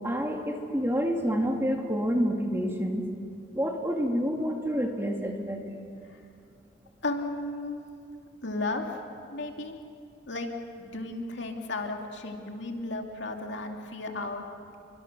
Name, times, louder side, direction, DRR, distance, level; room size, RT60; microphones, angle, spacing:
voice 1, 0.0-3.1 3.5-5.6, equal, 10° right, 1 dB, 2.3 m, -28 dB
voice 2, 7.0-7.8 8.4-9.0 9.3-9.8 10.3-10.5 10.8-14.4, left 2 dB, 65° left, 2 dB, 2.5 m, -34 dB
30.0 x 23.5 x 6.7 m, 2.4 s
head